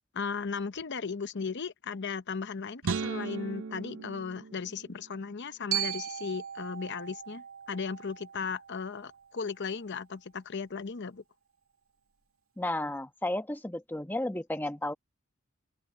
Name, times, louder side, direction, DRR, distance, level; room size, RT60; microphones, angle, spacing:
voice 1, 0.1-11.2, left 5 dB, 60° left, 0.8 m, -36 dB
sound 1, 2.8-5.2, right 5 dB, 70° right, 0.5 m, -36 dB
Glockenspiel, 5.7-9.8, right 11 dB, 85° right, 2.0 m, -38 dB
voice 2, 12.6-14.9, left 1 dB, 10° left, 1.1 m, -33 dB
open air
head